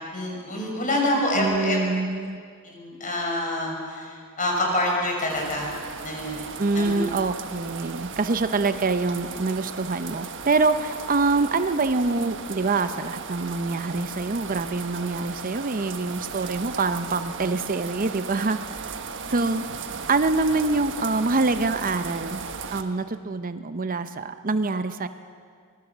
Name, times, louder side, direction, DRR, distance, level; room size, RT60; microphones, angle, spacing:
voice 1, 0.1-1.8 2.6-5.7 6.0-6.4 6.7-7.0, left 1 dB, 35° left, 0 dB, 6.0 m, -26 dB
voice 2, 1.4-2.4 6.6-19.0 19.3-19.6 20.1-25.1, right 3 dB, 40° right, 10 dB, 0.7 m, -25 dB
sound 1, 5.3-22.8, right 5 dB, 60° right, 1.4 m, -36 dB
25.0 x 21.0 x 7.3 m, 2.1 s
head